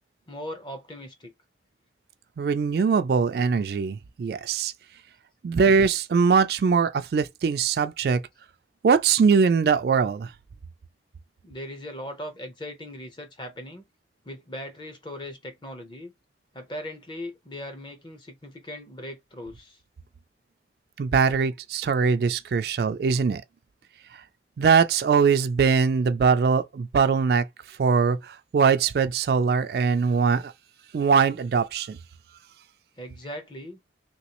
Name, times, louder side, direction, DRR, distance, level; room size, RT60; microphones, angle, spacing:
voice 1, 0.3-1.3 11.4-13.8 14.3-16.1 16.5-19.8 33.0-33.8, left 1 dB, 25° left, 0.7 m, -39 dB
voice 2, 2.4-4.7 5.4-8.2 8.8-10.3 21.0-23.4 24.6-30.5 30.9-32.0, right 5 dB, 60° right, 0.3 m, -22 dB
3.0 x 3.0 x 2.9 m
head